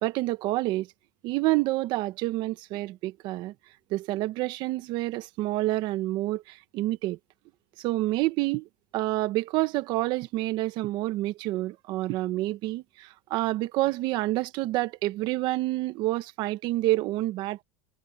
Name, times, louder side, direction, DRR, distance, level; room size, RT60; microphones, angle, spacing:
voice 1, 0.0-0.9 1.2-3.5 3.9-7.2 7.8-17.6, right 18 dB, 40° right, 1.1 m, -28 dB
supercardioid pair, 160°, 11 cm